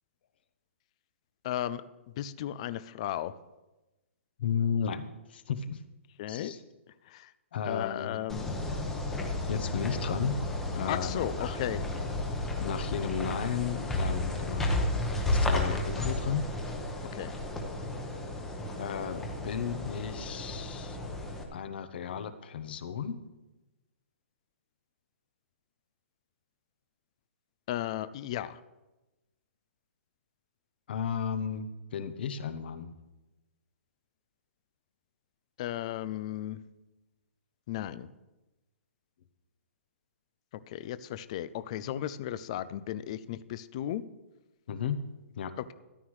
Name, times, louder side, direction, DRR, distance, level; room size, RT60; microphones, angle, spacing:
voice 1, 1.4-1.8 2.2-3.3 6.2-6.5 7.1-7.3 7.7-8.6 10.9-11.8 15.6-15.8 17.1-17.3 27.7-28.6 35.6-36.6 37.7-38.1 40.7-44.0, left 12 dB, 25° left, 14 dB, 0.3 m, -35 dB
voice 2, 4.4-5.0 5.3-5.8 6.3-6.6 7.5-8.2 9.5-10.4 10.7-11.1 11.4-11.6 12.6-14.8 15.3-16.4 18.8-21.0 21.5-23.2 30.9-32.9 44.7-45.0 45.4-45.5, left 7 dB, 45° left, 11 dB, 0.8 m, -34 dB
sound 1, 8.3-21.4, left 1 dB, 5° left, 0.9 m, -33 dB
13.5 x 11.0 x 3.2 m, 1.1 s
hypercardioid pair, 170°, 7 cm